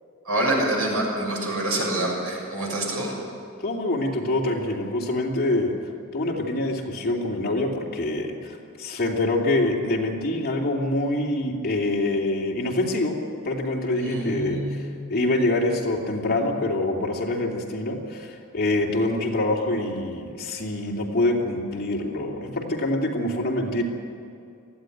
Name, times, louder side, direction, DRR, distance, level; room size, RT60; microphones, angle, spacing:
voice 1, 0.2-3.1 14.0-15.0, right 1 dB, 80° right, -1 dB, 6.8 m, -26 dB
voice 2, 3.6-5.7 6.1-13.2 13.4-23.8, left 2 dB, 45° left, -1 dB, 2.7 m, -25 dB
19.5 x 14.5 x 9.2 m, 2.6 s
head